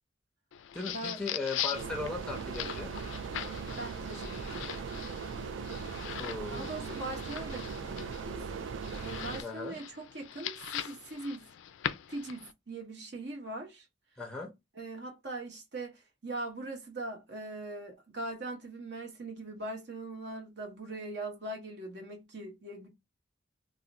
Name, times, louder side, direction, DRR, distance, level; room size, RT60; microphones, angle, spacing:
sound 1, 0.5-12.5, left 11 dB, 85° left, 0.3 m, -41 dB
voice 1, 0.7-2.9 6.2-6.8 9.4-9.8 14.2-14.5, left 3 dB, 5° left, 0.5 m, -38 dB
sound 2, 1.7-9.4, right 5 dB, 80° right, 0.3 m, -39 dB
voice 2, 3.8-4.8 6.5-8.4 9.0-11.5 12.1-13.9 14.7-22.9, right 2 dB, 60° right, 0.8 m, -41 dB
2.4 x 2.1 x 3.9 m
head